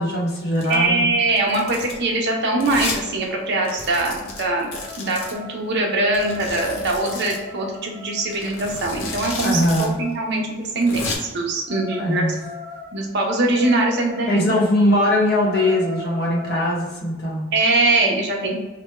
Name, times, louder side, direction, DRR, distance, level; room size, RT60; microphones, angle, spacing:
voice 1, 0.0-1.0 9.4-10.0 12.0-12.3 14.3-17.4, left 1 dB, 50° left, -3 dB, 0.9 m, -20 dB
Domestic sounds home sounds, 0.5-0.8 1.4-2.0 2.6-3.0 3.3-3.4 3.6-5.3 6.1-7.4 8.3-9.9 10.1-10.2 10.6-11.1, left 3 dB, 85° left, 0.8 m, -32 dB
voice 2, 0.7-11.0 11.3-12.3 12.9-14.6 17.5-18.6, right 2 dB, 50° right, 0 dB, 0.7 m, -22 dB
sound 1, 3.1-3.2 3.5-10.4 11.7-14.5 14.9-15.0 15.3-16.7, left 4 dB, 10° right, 0.9 m, -40 dB
3.4 x 2.2 x 4.2 m, 1.2 s
head